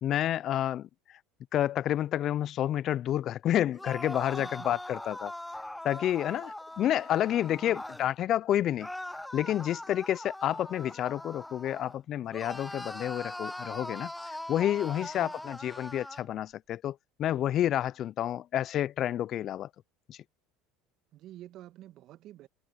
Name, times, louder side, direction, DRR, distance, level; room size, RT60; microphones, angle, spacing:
voice 1, 0.0-1.2 1.5-5.3 5.8-8.9 9.3-19.7 20.1-20.2, left 11 dB, 50° left, 0.6 m, -29 dB
sound 1, 3.7-8.1 8.8-12.0 12.3-16.3, left 1 dB, 5° left, 0.4 m, -41 dB
voice 2, 4.3-4.8 7.6-7.8 15.1-15.5 21.1-22.5, right 14 dB, 55° right, 1.7 m, -49 dB
hypercardioid pair, 90°, 0 cm